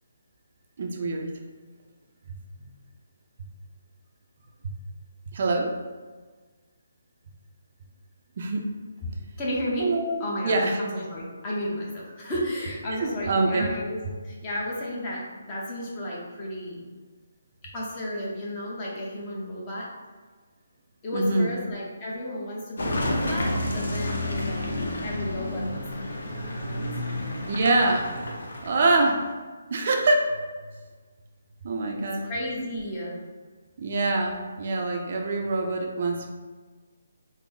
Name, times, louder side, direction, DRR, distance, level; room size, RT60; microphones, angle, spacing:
voice 1, 0.8-1.3 4.6-4.7 5.3-5.7 8.4-8.7 9.8-10.8 12.9-13.7 21.1-21.5 27.5-28.3 28.6-29.2 29.7-30.4 31.6-32.3 33.8-36.3, right 2 dB, 45° right, 2 dB, 0.4 m, -25 dB
voice 2, 9.4-9.9 10.2-16.9 17.6-19.9 21.0-24.6 25.0-27.6 32.0-33.2, left 1 dB, 20° left, -5 dB, 0.8 m, -33 dB
Car passing by / Engine, 22.8-29.3, left 1 dB, 75° left, 0.6 m, -30 dB
3.6 x 2.0 x 3.7 m, 1.4 s
hypercardioid pair, 160°, 0 cm